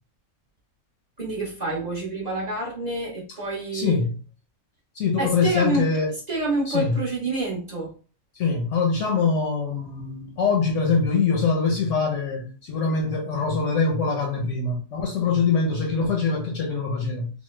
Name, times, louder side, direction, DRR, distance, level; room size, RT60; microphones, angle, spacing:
voice 1, 1.2-4.0 5.2-5.9 6.3-7.9, right 2 dB, 35° right, 0.8 m, -27 dB
voice 2, 3.7-4.2 4.9-6.1 6.7-6.9 8.3-17.3, left 4 dB, 60° left, 0.9 m, -23 dB
3.1 x 2.0 x 3.1 m
omnidirectional pair, 1.6 m